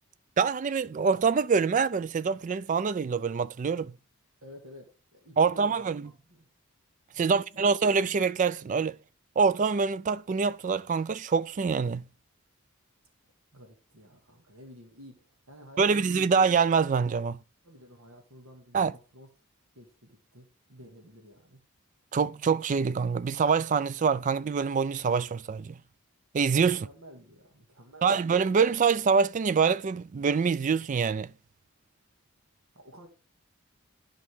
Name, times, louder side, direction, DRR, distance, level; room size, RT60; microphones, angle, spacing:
voice 1, 0.4-3.9 5.4-6.0 7.2-9.0 9.4-12.0 15.8-17.4 18.7-18.9 22.1-25.7 26.3-26.9 28.0-31.3, right 5 dB, 35° right, 0.3 m, -25 dB
voice 2, 4.4-6.5 7.2-7.7 13.5-16.4 17.6-19.3 19.8-21.6 26.8-28.4 32.7-33.1, equal, 70° right, 1.9 m, -51 dB
11.0 x 5.3 x 3.6 m
head